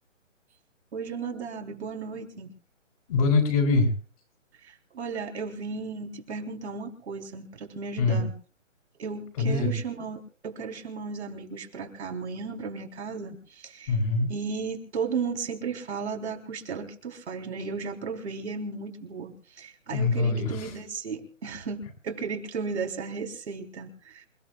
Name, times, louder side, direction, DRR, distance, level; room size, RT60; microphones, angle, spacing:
voice 1, 0.9-2.5 4.6-8.3 9.0-14.0 14.3-24.3, right 5 dB, 60° right, 4 dB, 3.9 m, -35 dB
voice 2, 3.1-3.9 8.0-8.2 9.4-9.7 13.9-14.3 19.9-20.8, left 3 dB, 30° left, 2 dB, 3.5 m, -23 dB
28.5 x 16.5 x 2.4 m, 0.39 s
hypercardioid pair, 155°, 39 cm